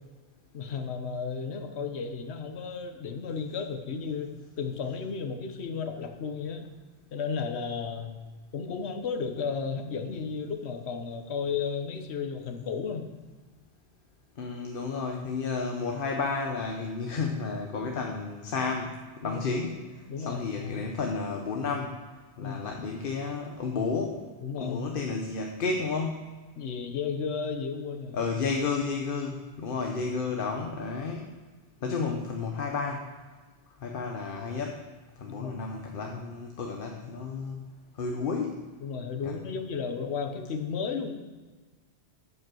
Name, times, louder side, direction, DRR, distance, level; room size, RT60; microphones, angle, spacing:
voice 1, 0.5-6.7 7.1-8.2 8.5-13.1 19.2-19.5 20.1-20.9 22.4-22.6 24.4-24.8 26.6-28.2 35.3-35.6 38.8-41.1, left 5 dB, 75° left, 5 dB, 1.2 m, -33 dB
voice 2, 14.4-19.8 20.2-22.0 22.4-24.2 24.6-26.4 28.1-31.3 31.8-33.1 33.8-34.8 35.2-37.6 38.0-38.7 39.2-39.4, left 4 dB, 55° left, 2 dB, 1.0 m, -32 dB
11.0 x 5.5 x 6.2 m, 1.3 s
omnidirectional pair, 1.1 m